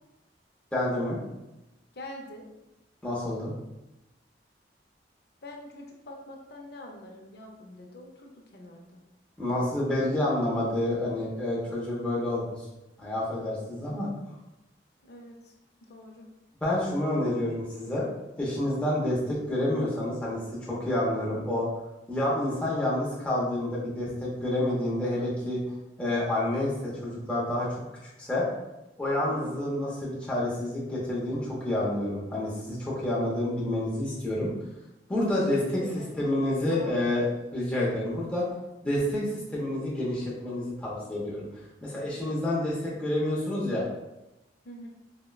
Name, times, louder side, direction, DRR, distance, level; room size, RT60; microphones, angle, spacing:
voice 1, 0.7-1.2 3.0-3.5 9.4-12.6 13.0-14.1 16.6-18.1 18.4-21.7 22.1-25.6 26.0-27.8 28.2-28.5 29.0-34.5 35.1-35.8 36.2-38.5 38.8-41.4 41.8-43.9, left 1 dB, 5° left, -7 dB, 0.6 m, -28 dB
voice 2, 1.9-2.5 5.4-9.0 15.0-15.5 15.8-16.3 29.2-29.6 35.5-36.2 36.6-37.1 44.6-44.9, left 1 dB, 60° left, 1 dB, 0.5 m, -45 dB
4.1 x 2.1 x 2.3 m, 0.97 s
head